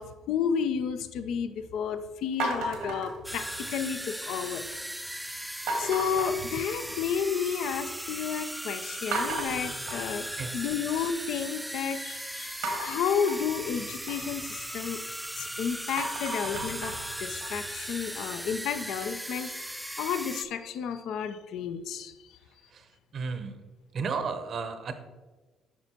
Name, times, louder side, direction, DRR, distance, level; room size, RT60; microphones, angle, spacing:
voice 1, 0.0-4.6 5.8-10.3 10.5-15.0 15.4-19.5 20.0-22.4, left 7 dB, 70° left, 10 dB, 0.4 m, -31 dB
sound 1, 2.4-3.9 4.3-4.8 5.7-7.2 7.5-8.1 8.5-8.6 9.1-11.2 12.6-15.4 15.8-18.7, right 2 dB, 80° right, 1.2 m, -36 dB
sound 2, 3.2-20.4, equal, 5° right, 0.4 m, -38 dB
voice 2, 23.1-23.5 23.9-24.9, right 5 dB, 55° right, 9 dB, 0.8 m, -33 dB
8.5 x 5.8 x 2.8 m, 1.2 s
hypercardioid pair, 55°, 0 cm